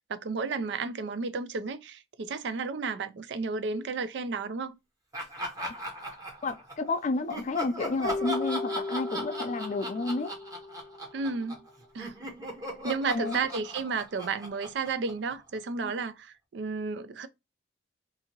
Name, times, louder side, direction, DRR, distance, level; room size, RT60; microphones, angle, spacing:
voice 1, 0.1-4.8 11.1-11.7 11.9-12.2 12.8-17.3, right 4 dB, 65° right, 0.4 m, -32 dB
Laughter, 5.1-6.9 7.3-11.7 12.0-15.6, equal, 20° right, 0.7 m, -38 dB
voice 2, 6.4-10.3 13.1-13.4 15.8-15.9, left 3 dB, 40° left, 0.4 m, -31 dB
Keyboard (musical), 8.0-11.3, left 3 dB, 85° left, 0.7 m, -36 dB
2.7 x 2.6 x 2.8 m
head